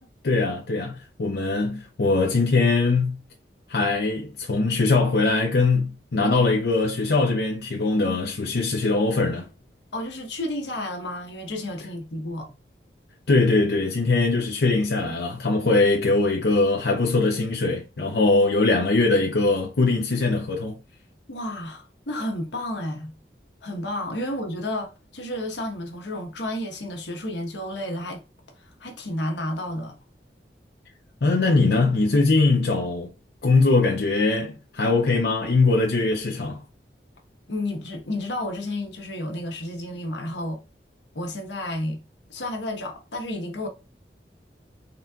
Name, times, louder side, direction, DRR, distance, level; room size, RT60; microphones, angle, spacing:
voice 1, 0.2-3.2 3.7-9.5 13.3-20.8 31.2-33.1 33.4-36.6, left 3 dB, 65° left, 0.6 m, -21 dB
voice 2, 9.9-12.5 21.3-23.1 23.6-28.2 28.6-30.0 37.5-40.6 41.1-42.0 42.3-43.7, left 1 dB, 90° left, 1.1 m, -31 dB
4.1 x 3.8 x 2.3 m
head